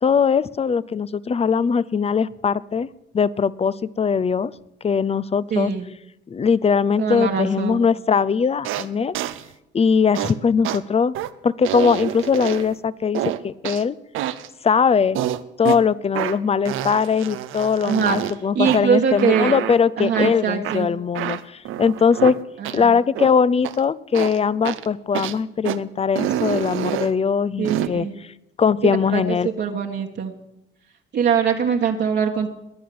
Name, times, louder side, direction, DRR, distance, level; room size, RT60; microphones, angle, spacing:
voice 1, 0.0-2.9 3.1-4.5 4.8-5.7 6.3-9.1 9.7-11.1 11.4-14.0 14.6-15.2 15.6-22.3 22.7-28.3 28.6-29.5, left 6 dB, 30° left, 20 dB, 0.6 m, -20 dB
voice 2, 5.5-5.8 7.0-7.8 17.8-18.2 18.5-19.6 20.0-20.9 22.6-23.0 27.6-28.1 28.8-30.3 31.1-32.5, right 7 dB, 60° right, 1 dB, 1.5 m, -22 dB
sound 1, 8.6-8.9 9.1-9.4 10.2-10.3 10.6-10.8 11.1-11.3 11.7-12.8 13.2-13.8 14.1-14.5 15.1-15.8 16.2-16.4 16.7-18.3 18.7-18.8 19.2-19.8 20.1-20.3 20.6-20.8 21.1-22.4 22.6-22.8 23.2-23.3 23.6-23.8 24.1-24.4 24.6-24.9 25.1-25.4 25.6-25.8 26.2-27.1 27.6-27.9, right 12 dB, 90° right, 0.8 m, -27 dB
21.5 x 8.6 x 7.8 m, 0.83 s
cardioid pair, 90°, 20 cm